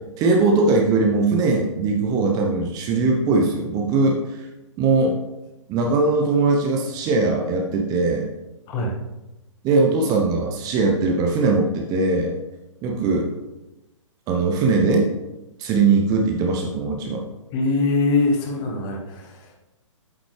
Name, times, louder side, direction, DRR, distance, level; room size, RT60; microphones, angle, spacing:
voice 1, 0.2-4.4 4.8-5.2 5.7-8.3 9.6-12.3 12.8-13.3 14.3-15.1 15.6-17.2, right 3 dB, 20° right, 1 dB, 0.9 m, -20 dB
voice 2, 17.5-19.5, left 3 dB, 25° left, 1 dB, 1.4 m, -23 dB
8.4 x 7.6 x 3.4 m, 1.0 s
figure-of-eight pair, 125°, 17 cm